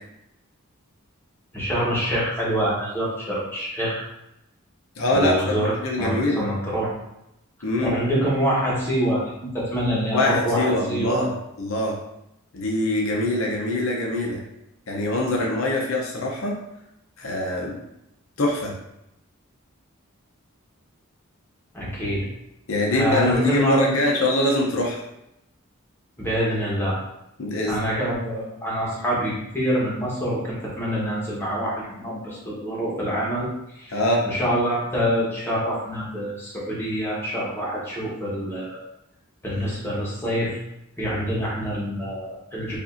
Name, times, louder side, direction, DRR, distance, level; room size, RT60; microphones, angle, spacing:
voice 1, 1.5-4.0 5.1-5.7 6.0-6.9 7.8-11.2 21.7-22.3 22.9-23.8 26.2-27.0 27.7-33.5 33.7-34.0 34.2-38.8 39.4-40.6 41.0-42.8, equal, 10° left, -6 dB, 1.2 m, -26 dB
voice 2, 5.0-6.4 7.6-8.0 10.1-11.3 11.6-12.0 12.5-14.4 14.9-16.6 17.2-17.8 18.4-18.7 22.7-25.0 27.4-27.9 33.9-34.3, left 1 dB, 65° left, -2 dB, 0.8 m, -23 dB
4.9 x 2.7 x 2.6 m, 0.86 s
head